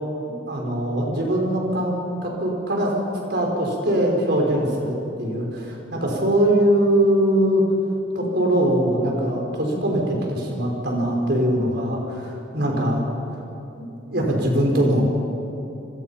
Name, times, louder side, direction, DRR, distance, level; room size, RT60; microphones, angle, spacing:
voice 1, 0.5-1.9 2.2-7.6 8.1-13.0 13.8-15.0, right 1 dB, 50° right, 0 dB, 5.1 m, -22 dB
28.0 x 25.5 x 5.8 m, 2.9 s
head